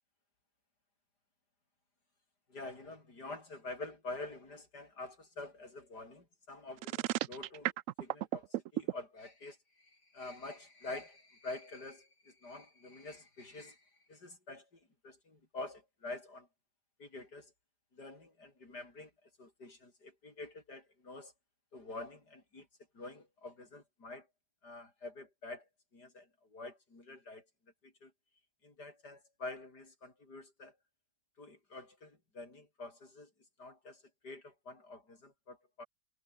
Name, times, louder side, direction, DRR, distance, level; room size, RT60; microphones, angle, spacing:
voice 1, 2.5-7.7 8.0-16.5 17.0-17.5 17.9-21.3 21.7-22.7 22.9-24.3 24.6-25.7 25.9-27.4 27.8-28.1 28.6-30.7 31.4-33.3 33.6-35.9, left 2 dB, 90° left, 6.6 m, -47 dB
sound 1, 6.8-8.9, right 13 dB, 65° right, 0.9 m, -34 dB
omnidirectional pair, 1.7 m